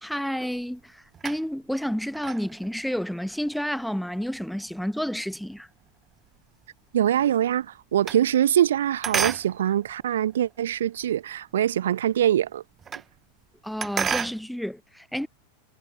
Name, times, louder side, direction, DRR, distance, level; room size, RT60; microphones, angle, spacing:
voice 1, 0.0-5.7 13.6-15.3, equal, ahead, 0.8 m, -30 dB
sound 1, 0.5-1.7 2.1-6.7 7.0-8.8 9.0-11.1 11.5-11.6 11.9-12.0 12.2-13.2 13.4-14.4, right 7 dB, 20° right, 0.4 m, -33 dB
voice 2, 6.9-12.6, right 11 dB, 60° right, 0.8 m, -23 dB
figure-of-eight pair, 90°, 0 cm